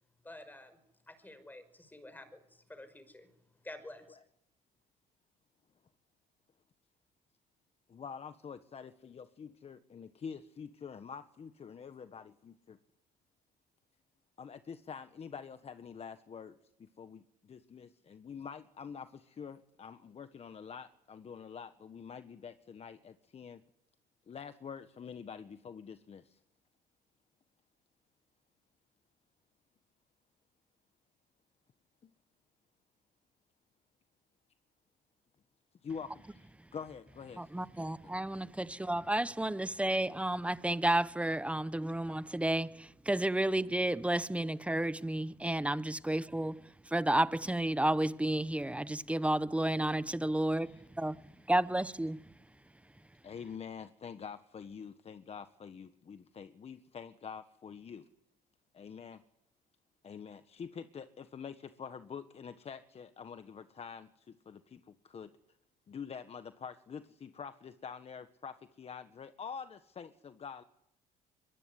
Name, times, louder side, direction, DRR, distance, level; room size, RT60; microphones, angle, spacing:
voice 1, 0.2-0.8 1.1-3.3 3.6-4.2, left 1 dB, 10° left, 5.7 m, -50 dB
voice 2, 7.9-12.8 14.4-23.6 24.3-26.4 32.0-32.1 35.8-38.0 50.4-50.8 53.2-58.1 58.7-59.2 60.0-65.3 65.9-70.6, left 6 dB, 35° left, 1.4 m, -46 dB
voice 3, 37.4-51.2 51.5-52.2, right 1 dB, 5° right, 1.0 m, -31 dB
23.5 x 22.5 x 9.9 m
cardioid pair, 110°, 17 cm